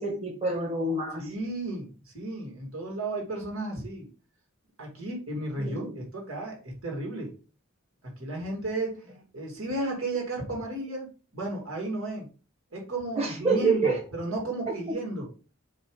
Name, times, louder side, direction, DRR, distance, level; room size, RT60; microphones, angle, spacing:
voice 1, 0.0-1.3 5.6-5.9 13.2-14.0, right 3 dB, 30° right, -2 dB, 1.9 m, -27 dB
voice 2, 1.2-1.9 2.1-4.1 4.8-7.3 8.2-9.0 9.3-12.3 12.7-15.3, right 2 dB, 75° right, 0 dB, 2.5 m, -33 dB
7.4 x 2.9 x 4.9 m, 0.35 s
head